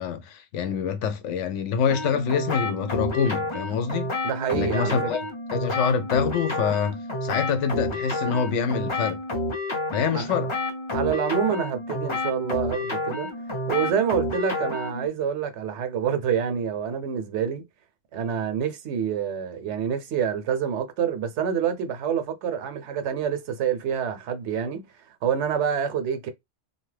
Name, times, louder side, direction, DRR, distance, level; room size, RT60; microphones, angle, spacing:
voice 1, 0.0-4.1 4.5-5.2 5.5-9.2 9.9-10.5, left 6 dB, 75° left, 0.9 m, -26 dB
sound 1, 1.9-15.1, left 2 dB, 30° left, 0.6 m, -30 dB
voice 2, 4.2-5.1 10.1-10.3 10.9-13.3 13.7-17.6 18.1-24.9 25.2-26.3, right 8 dB, 70° right, 0.8 m, -27 dB
2.7 x 2.2 x 3.1 m
omnidirectional pair, 1.3 m